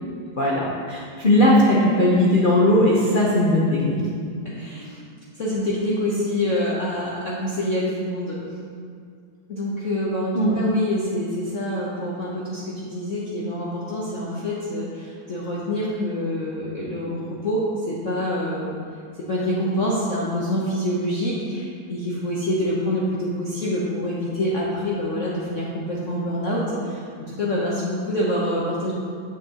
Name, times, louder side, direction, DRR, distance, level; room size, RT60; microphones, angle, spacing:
voice 1, 0.4-4.0 10.3-10.6, left 1 dB, 75° left, -5 dB, 0.4 m, -18 dB
voice 2, 4.4-5.0 5.4-8.4 9.5-18.8 19.3-28.9, left 1 dB, 50° left, -6 dB, 0.9 m, -26 dB
9.8 x 6.8 x 2.9 m, 2.2 s
omnidirectional pair, 2.3 m